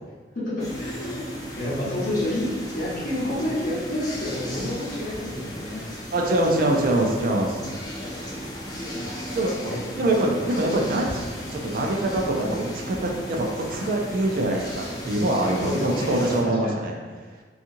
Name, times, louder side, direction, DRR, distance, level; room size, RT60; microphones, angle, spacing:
voice 1, 0.4-2.5 2.7-5.9 9.0-9.3 9.6-10.0 15.6-16.1 16.4-16.7, left 1 dB, 50° left, -8 dB, 0.9 m, -29 dB
sound 1, 0.6-16.4, equal, 20° left, 0.5 m, -35 dB
voice 2, 6.1-7.6 9.3-9.5 9.9-16.9, right 1 dB, 50° right, 0 dB, 0.4 m, -24 dB
2.9 x 2.4 x 2.6 m, 1.5 s
head